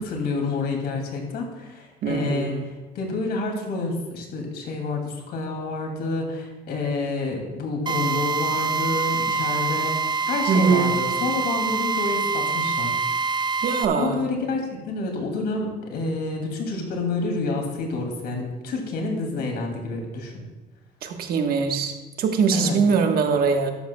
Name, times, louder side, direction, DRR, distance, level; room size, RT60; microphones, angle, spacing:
voice 1, 0.0-13.4 13.9-20.4 22.5-22.8, left 3 dB, 70° left, 2 dB, 2.5 m, -29 dB
voice 2, 2.0-2.6 10.5-11.0 13.6-14.2 21.0-23.7, right 5 dB, 65° right, 4 dB, 1.3 m, -22 dB
Drill, 7.9-13.9, right 4 dB, 25° right, 0.6 m, -25 dB
13.0 x 11.0 x 2.3 m, 1.2 s
cardioid pair, 110°, 17 cm